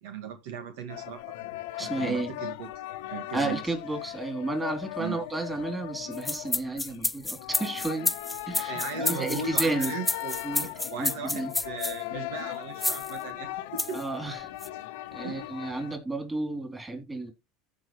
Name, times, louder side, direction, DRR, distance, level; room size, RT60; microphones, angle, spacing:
voice 1, 0.0-1.2 1.8-2.7 3.1-3.6 5.0-5.2 8.5-14.0 15.2-15.4, right 6 dB, 80° right, 1.7 m, -38 dB
sound 1, 0.9-16.0, left 15 dB, 85° left, 1.0 m, -38 dB
voice 2, 1.8-2.3 3.3-8.1 8.5-9.9 10.4-10.7 11.0-11.5 13.9-14.5 15.1-17.3, right 2 dB, 15° right, 3.5 m, -32 dB
sound 2, 6.1-12.0 12.8-13.1 13.8-14.0 14.6-14.7, left 2 dB, 10° left, 0.6 m, -29 dB
15.0 x 5.2 x 3.2 m
supercardioid pair, 110°, 0 cm